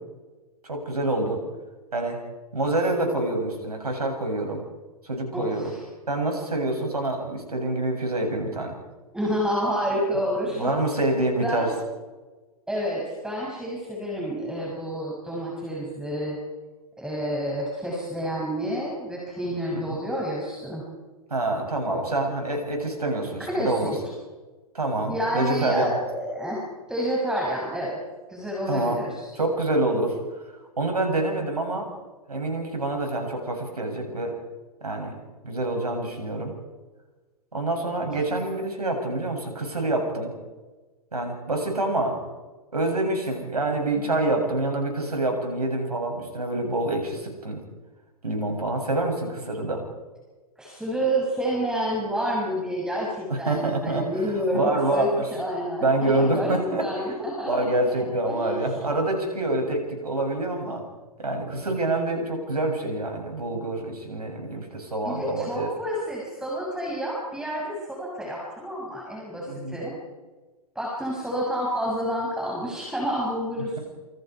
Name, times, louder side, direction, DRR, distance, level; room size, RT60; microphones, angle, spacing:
voice 1, 0.6-1.4 1.9-2.2 2.5-4.6 5.0-5.7 6.1-8.7 10.6-11.7 19.7-20.0 21.3-23.9 24.7-25.9 28.7-29.0 29.4-30.2 30.8-31.9 32.3-34.4 34.8-35.2 35.4-36.5 37.5-40.3 41.1-42.2 42.7-47.6 48.2-49.8 53.5-55.3 55.8-57.1 57.5-60.8 61.2-65.7 69.5-69.8, right 2 dB, 80° right, 3 dB, 7.7 m, -26 dB
voice 2, 5.3-5.8 9.1-10.7 11.4-11.7 12.7-16.4 17.0-20.8 21.9-22.0 23.4-23.9 25.1-28.0 28.3-29.3 50.6-57.7 57.9-58.5 65.0-69.9 70.7-73.8, equal, 5° right, -3 dB, 6.8 m, -29 dB
28.0 x 26.5 x 4.8 m, 1.2 s
figure-of-eight pair, 110°, 19 cm